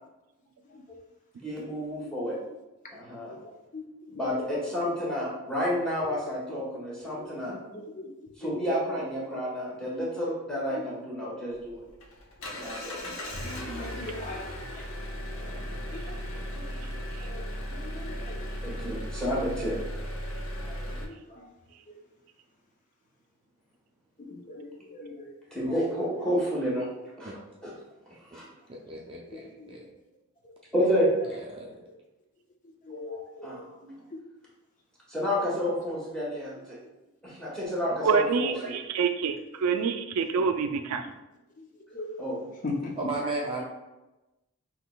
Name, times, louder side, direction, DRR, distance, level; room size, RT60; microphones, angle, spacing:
voice 1, 1.4-2.4 2.9-3.3 4.1-7.5 8.4-11.8 12.5-12.9 15.4-15.8 18.6-19.8 25.5-26.9 27.2-27.3 27.6-27.7 28.3-28.4 30.7-31.1 33.4-33.6 35.1-36.8 37.2-38.7 42.2-42.4, equal, 5° left, -7 dB, 1.1 m, -30 dB
voice 2, 3.2-4.6 5.0-5.2 6.0-6.2 6.5-6.6 7.1-9.1 10.0-10.1 10.7-10.9 12.8-14.9 15.9-16.2 16.5-16.9 17.2-17.4 17.7-18.5 20.5-21.5 21.9-22.0 24.2-25.4 25.7-26.0 29.3-29.7 30.4-30.5 31.1-31.4 32.8-34.2 35.3-35.4 39.5-39.7 41.6-42.3 42.6-43.0, left 2 dB, 35° left, 1 dB, 0.5 m, -41 dB
Engine, 11.5-21.0, equal, 70° left, 0.7 m, -36 dB
voice 3, 28.7-29.9 31.5-31.9 43.0-43.6, right 2 dB, 25° right, -2 dB, 0.4 m, -35 dB
voice 4, 38.0-41.1, right 5 dB, 90° right, 7 dB, 0.4 m, -26 dB
5.7 x 2.9 x 2.3 m, 1.0 s
head